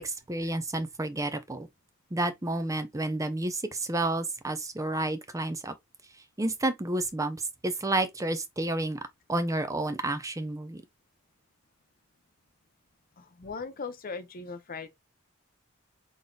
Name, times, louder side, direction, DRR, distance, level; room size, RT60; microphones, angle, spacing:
voice 1, 0.0-1.7 2.1-5.7 6.4-9.0 9.3-10.8, right 2 dB, 15° right, 0.6 m, -30 dB
voice 2, 13.2-14.9, left 4 dB, 45° left, 0.7 m, -39 dB
3.9 x 3.6 x 2.4 m
head